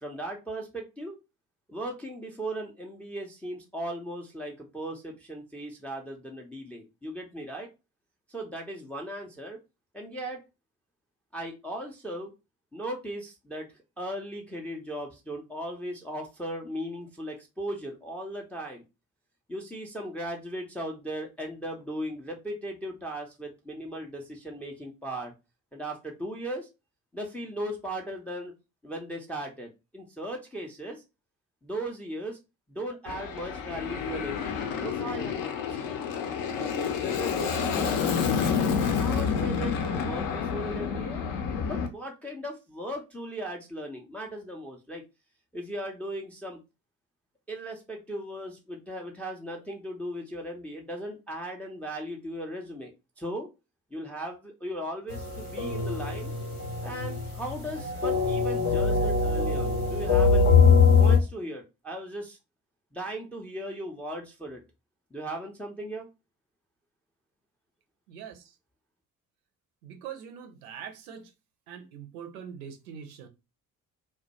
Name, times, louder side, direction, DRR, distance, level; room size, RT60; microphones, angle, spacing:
voice 1, 0.0-1.2 1.7-7.7 8.3-9.6 9.9-10.4 11.3-12.3 12.7-13.7 14.0-18.8 19.5-25.3 25.7-26.7 27.1-28.5 28.8-31.0 31.6-32.4 32.7-35.9 36.5-37.9 38.9-41.3 41.6-45.0 45.5-46.6 47.5-52.9 53.2-53.5 53.9-56.3 56.8-60.5 61.0-62.4 62.9-64.6 65.1-66.1, right 1 dB, 5° left, 0.4 m, -37 dB
Aircraft, 33.1-41.9, left 6 dB, 55° left, 0.5 m, -29 dB
sound 1, 55.1-61.2, left 5 dB, 90° left, 0.7 m, -23 dB
voice 2, 68.1-68.4 69.8-71.3 71.7-73.3, right 8 dB, 75° right, 0.6 m, -42 dB
2.2 x 2.1 x 2.7 m
figure-of-eight pair, 45°, 43 cm